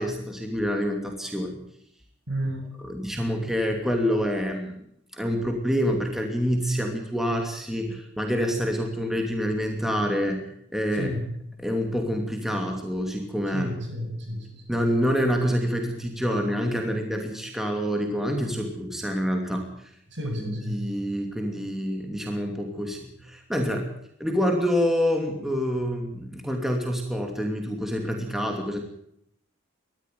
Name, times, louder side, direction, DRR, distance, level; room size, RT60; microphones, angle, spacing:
voice 1, 0.0-1.6 2.8-4.8 5.1-11.1 11.6-13.7 14.7-19.9 20.4-23.9 24.2-28.8, equal, ahead, 3 dB, 2.7 m, -27 dB
voice 2, 2.3-2.6 10.9-11.3 13.5-14.6 20.1-20.9, equal, 60° right, 4 dB, 7.1 m, -31 dB
21.0 x 13.5 x 9.4 m, 0.74 s
head